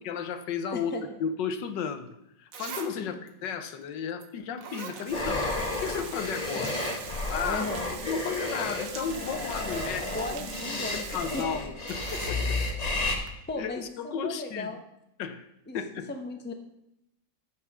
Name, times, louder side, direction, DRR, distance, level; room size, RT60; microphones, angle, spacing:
voice 1, 0.0-0.9 1.2-6.7 7.1-10.5 10.9-12.6 13.5-14.7 15.2-15.5 15.7-16.1, left 6 dB, 75° left, 9 dB, 1.5 m, -34 dB
voice 2, 0.7-1.0 3.0-3.2 6.5-6.7 7.4-7.9 10.0-11.0 11.3-11.4 13.5-14.8 15.7-15.8 16.1-16.5, left 2 dB, 10° left, 5 dB, 0.7 m, -36 dB
Zipper (clothing), 2.0-2.1 2.5-2.9 3.3-3.4 4.2-4.3 4.6-5.6 5.8-5.9 6.6-7.0 7.5-7.6 7.9-8.1 9.0-9.1 9.4-10.0 11.9-12.4 13.3-13.4, right 6 dB, 55° right, 1.2 m, -41 dB
sound 1, 5.1-13.2, left 2 dB, 25° left, 1.0 m, -32 dB
Water, 5.1-11.5, right 8 dB, 75° right, 0.6 m, -43 dB
14.0 x 4.8 x 6.1 m, 0.84 s
omnidirectional pair, 2.0 m